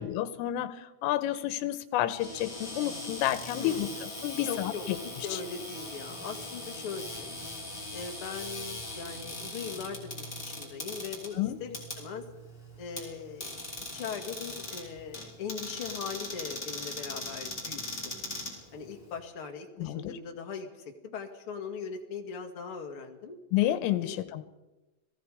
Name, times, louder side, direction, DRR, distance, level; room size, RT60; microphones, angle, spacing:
voice 1, 0.0-5.0 5.3-5.4 11.3-11.6 19.8-20.2 23.5-24.4, left 13 dB, 85° left, 12 dB, 3.6 m, -30 dB
Cupboard open or close, 2.1-19.2, left 1 dB, 10° left, 5.1 m, -40 dB
voice 2, 3.6-4.0 4.4-4.8 5.2-7.4 7.9-12.2 12.8-13.5 13.9-17.8 18.7-23.4 24.0-24.1, left 6 dB, 50° left, 3 dB, 1.6 m, -40 dB
30.0 x 20.0 x 5.0 m, 1.1 s
omnidirectional pair, 5.8 m